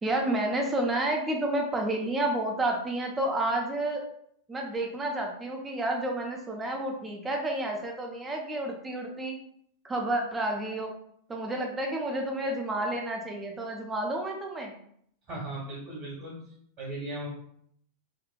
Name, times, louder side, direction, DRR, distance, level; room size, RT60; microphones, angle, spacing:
voice 1, 0.0-4.0 4.5-9.4 9.8-10.9 11.3-14.8, right 1 dB, 15° right, 1 dB, 0.6 m, -30 dB
voice 2, 15.3-16.4 16.8-17.3, right 1 dB, 40° right, -7 dB, 1.4 m, -37 dB
3.6 x 2.5 x 2.2 m, 0.67 s
figure-of-eight pair, 90°, 0 cm